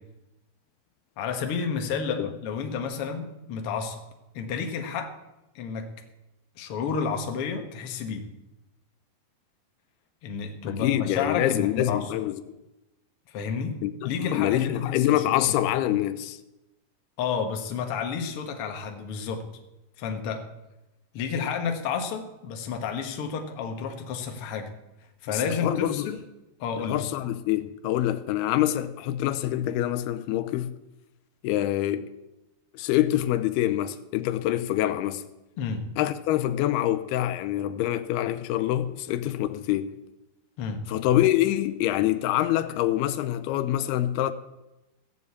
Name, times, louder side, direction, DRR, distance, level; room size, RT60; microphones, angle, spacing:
voice 1, 1.2-4.0 4.3-5.1 5.5-5.9 6.6-8.3 10.2-12.0 13.3-13.8 14.0-15.5 17.2-19.5 20.0-20.4 21.1-24.7 25.2-26.2 26.6-27.0 35.6-35.8 40.6-40.8, left 6 dB, 55° left, 1.6 m, -31 dB
voice 2, 10.7-12.4 13.8-16.4 25.3-26.2 26.9-30.7 31.4-32.1 32.7-35.2 36.0-40.0 40.9-44.3, left 13 dB, 85° left, 2.6 m, -25 dB
16.5 x 7.2 x 8.4 m
omnidirectional pair, 4.5 m